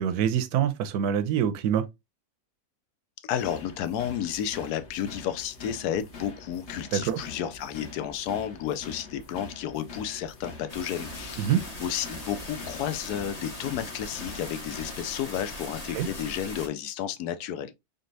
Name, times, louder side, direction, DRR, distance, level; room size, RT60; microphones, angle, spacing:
voice 1, 0.0-1.9 6.9-7.2 11.4-11.6 15.9-16.1, right 9 dB, 85° right, 1.1 m, -25 dB
voice 2, 3.2-11.5 11.8-17.7, left 10 dB, 85° left, 1.1 m, -32 dB
sound 1, 3.4-15.0, left 3 dB, 50° left, 1.3 m, -45 dB
sound 2, 10.7-16.7, left 1 dB, 30° left, 1.0 m, -40 dB
4.0 x 3.5 x 2.6 m
omnidirectional pair, 1.6 m